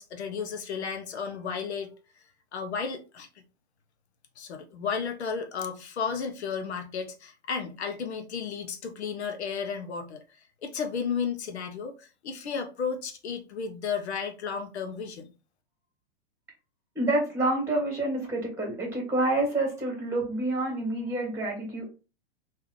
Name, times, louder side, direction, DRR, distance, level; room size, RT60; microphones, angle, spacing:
voice 1, 0.0-1.9 2.5-3.3 4.4-10.2 10.6-15.3, left 6 dB, 80° left, 0.9 m, -33 dB
voice 2, 17.0-21.8, right 2 dB, 10° right, 1.9 m, -28 dB
3.6 x 2.8 x 3.1 m
hypercardioid pair, 120°, 33 cm